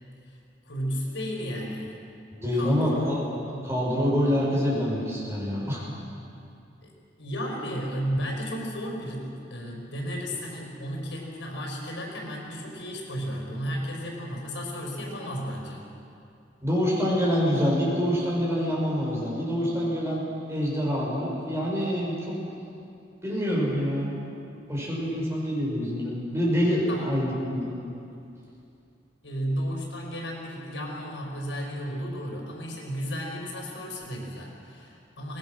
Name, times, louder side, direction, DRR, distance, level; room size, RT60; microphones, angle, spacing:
voice 1, 0.2-2.0 2.5-3.1 3.5-3.7 6.8-6.9 7.2-15.9 26.9-27.1 29.2-35.4, equal, 80° left, -1 dB, 5.1 m, -33 dB
voice 2, 2.3-3.2 3.6-5.8 16.6-20.2 20.5-22.4 23.2-24.1 24.7-27.7, equal, 15° right, -5 dB, 6.7 m, -26 dB
23.5 x 19.5 x 6.4 m, 2.5 s
head